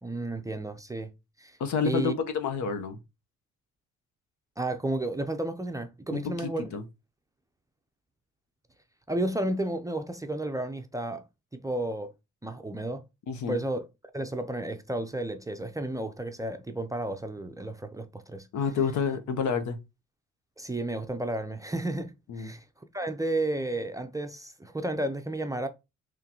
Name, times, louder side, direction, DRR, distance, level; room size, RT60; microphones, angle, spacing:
voice 1, 0.0-1.1 1.4-1.6 1.8-2.1 4.6-6.7 9.1-11.2 11.5-12.1 12.4-13.0 13.5-13.8 14.1-18.5 20.6-22.6 22.9-25.7, right 1 dB, 10° right, 0.5 m, -32 dB
voice 2, 1.6-3.0 6.1-6.8 13.3-13.6 18.5-19.8 22.3-22.5, left 5 dB, 70° left, 0.8 m, -29 dB
3.7 x 3.2 x 2.9 m
cardioid pair, 90°, 30 cm